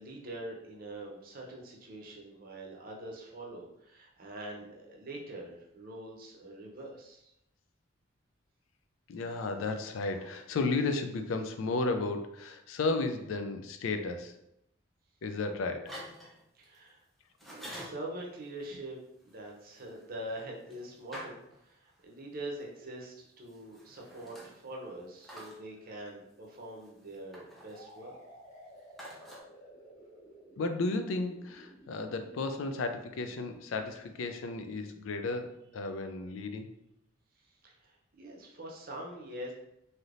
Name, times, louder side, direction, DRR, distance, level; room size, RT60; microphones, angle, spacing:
voice 1, 0.0-7.3 16.5-17.0 17.5-19.0 19.2-28.2 37.6-39.5, right 1 dB, 45° right, -1 dB, 0.7 m, -44 dB
voice 2, 9.1-14.4 15.2-16.0 30.6-36.7, left 3 dB, 80° left, 7 dB, 0.4 m, -33 dB
sound 1, 15.8-16.8 17.4-18.1 19.3-22.0 23.5-24.8 25.2-25.6 26.8-27.9 29.0-29.4, equal, ahead, 0.5 m, -48 dB
sound 2, 27.7-35.4, equal, 40° left, 0.8 m, -55 dB
3.3 x 2.7 x 2.5 m, 0.80 s
head